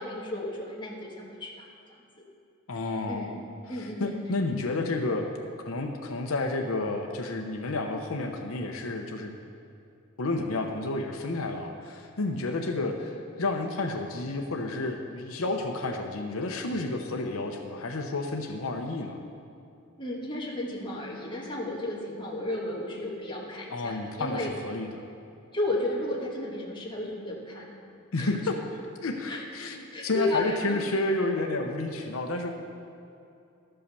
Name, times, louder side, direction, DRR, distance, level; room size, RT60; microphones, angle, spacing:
voice 1, 0.0-1.7 3.1-3.3 3.7-4.2 20.0-24.5 25.5-27.8 28.2-28.3 29.3-29.4 29.9-30.8, left 1 dB, 25° left, -3 dB, 1.7 m, -33 dB
voice 2, 2.7-3.3 4.0-5.3 5.7-9.3 10.2-19.2 23.7-25.0 28.1-28.5 29.0-32.5, left 2 dB, 85° left, 3 dB, 0.8 m, -31 dB
12.5 x 5.6 x 6.8 m, 2.6 s
head